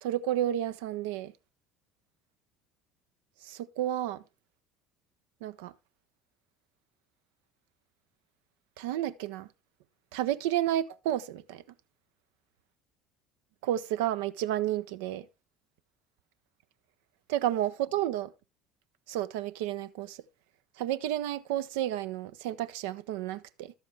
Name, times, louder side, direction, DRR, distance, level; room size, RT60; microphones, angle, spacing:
voice 1, 0.0-1.3 3.4-4.2 5.4-5.7 8.8-9.5 10.1-11.6 13.6-15.3 17.3-18.3 19.1-20.2 20.8-23.7, right 12 dB, 70° right, 0.5 m, -31 dB
12.0 x 7.2 x 3.3 m
hypercardioid pair, 65°, 0 cm